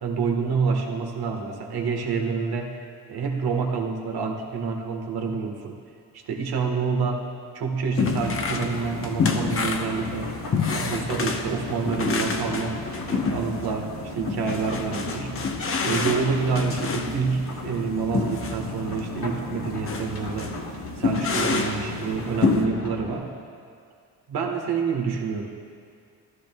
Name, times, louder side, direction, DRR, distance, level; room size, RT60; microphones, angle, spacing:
voice 1, 0.0-2.8 3.1-5.8 6.1-10.4 10.7-15.4 15.8-20.5 21.0-23.2 24.3-25.5, right 5 dB, 65° right, 2 dB, 1.5 m, -28 dB
sound 1, 8.0-8.8 9.0-13.7 14.3-17.2 18.1-18.6 19.0-19.1 19.9-20.1 20.4-20.6 21.0-21.9 22.4-22.7, left 4 dB, 30° left, 0.9 m, -27 dB
sound 2, 8.1-23.2, left 1 dB, 60° left, 2.1 m, -36 dB
14.5 x 12.0 x 2.3 m, 2.2 s
cardioid pair, 80°, 42 cm